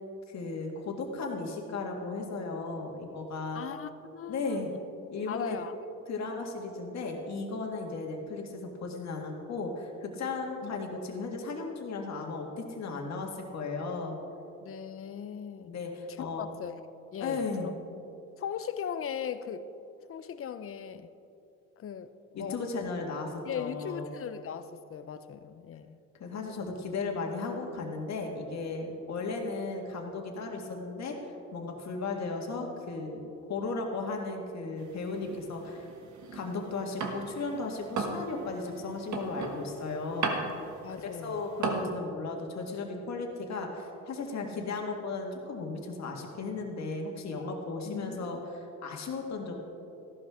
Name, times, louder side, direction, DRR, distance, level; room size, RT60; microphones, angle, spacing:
voice 1, 0.3-3.6 4.3-4.7 5.1-5.6 6.1-14.2 15.7-16.4 17.2-17.7 22.4-24.1 26.2-31.2 31.5-33.2 33.5-35.9 36.3-40.4 41.0-48.4 48.8-49.5, left 3 dB, 60° left, 2 dB, 1.9 m, -35 dB
voice 2, 3.5-4.8 5.3-5.8 10.6-10.7 11.1-11.2 14.6-15.7 16.1-16.8 17.1-17.7 18.4-19.7 20.1-21.1 21.8-22.7 23.4-26.0 40.8-41.4 47.8-48.3, left 8 dB, 45° left, 12 dB, 0.7 m, -39 dB
sound 1, 34.8-37.5 37.8-41.9, right 4 dB, 70° right, 1.6 m, -35 dB
14.0 x 12.0 x 3.7 m, 2.8 s
cardioid pair, 90°, 30 cm